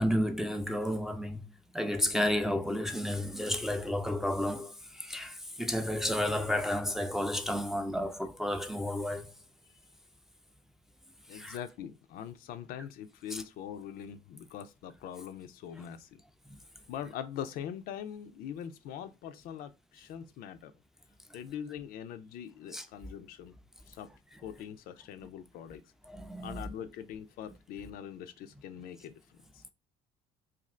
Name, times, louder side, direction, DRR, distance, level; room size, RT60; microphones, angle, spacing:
voice 1, 0.0-1.4 1.7-9.3 11.3-11.6 13.3-13.4 22.7-22.9 26.1-26.6, left 1 dB, ahead, 0.4 m, -32 dB
voice 2, 11.3-16.2 16.9-20.7 21.3-23.5 23.9-24.1 24.4-25.8 26.4-29.6, left 9 dB, 65° left, 0.4 m, -42 dB
2.5 x 2.3 x 3.2 m
supercardioid pair, 80°, 16 cm